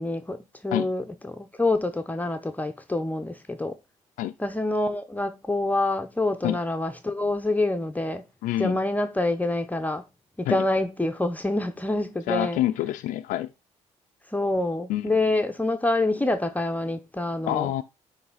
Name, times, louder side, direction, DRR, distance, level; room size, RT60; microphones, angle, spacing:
voice 1, 0.0-3.8 4.4-8.2 8.6-10.0 10.4-12.6 14.3-17.7, left 2 dB, 10° left, 0.7 m, -26 dB
voice 2, 8.4-8.8 10.5-10.6 12.3-13.5 14.9-15.1 17.5-17.8, left 14 dB, 80° left, 0.4 m, -27 dB
9.3 x 3.3 x 4.0 m
supercardioid pair, 75°, 13 cm